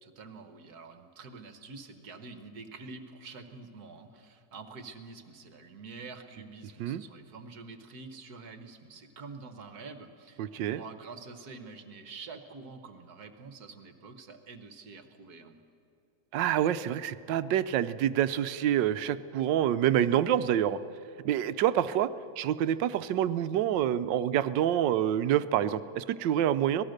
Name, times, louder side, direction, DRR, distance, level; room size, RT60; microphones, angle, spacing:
voice 1, 0.0-15.6, right 4 dB, 60° right, 8 dB, 1.6 m, -47 dB
voice 2, 10.4-10.8 16.3-20.8 21.2-22.1 22.4-26.8, right 11 dB, 85° right, 14 dB, 1.4 m, -27 dB
26.0 x 18.5 x 6.6 m, 2.9 s
omnidirectional pair, 1.9 m